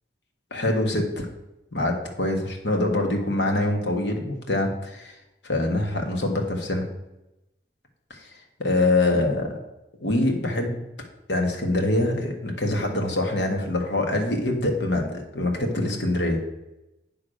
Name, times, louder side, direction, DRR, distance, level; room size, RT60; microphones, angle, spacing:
voice 1, 0.5-1.3 1.7-5.1 5.4-6.9 8.1-8.3 8.6-9.6 10.0-10.8 11.3-16.4, left 2 dB, 85° left, 2 dB, 1.5 m, -24 dB
10.0 x 3.6 x 6.4 m, 0.93 s
head